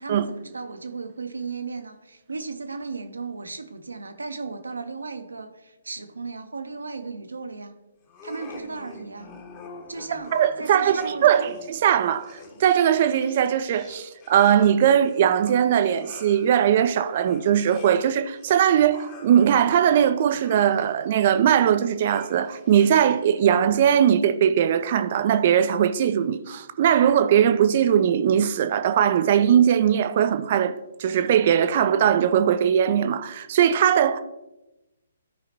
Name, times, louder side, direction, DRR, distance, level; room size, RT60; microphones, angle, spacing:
voice 1, 0.0-7.8 8.2-9.3 9.9-11.5, right 4 dB, 70° right, 0.9 m, -35 dB
sound 1, 8.1-23.5, left 2 dB, 30° left, 1.5 m, -46 dB
voice 2, 10.3-30.7 31.0-34.2, right 9 dB, 40° right, 0.5 m, -20 dB
13.5 x 5.0 x 2.9 m
figure-of-eight pair, 130°, 0 cm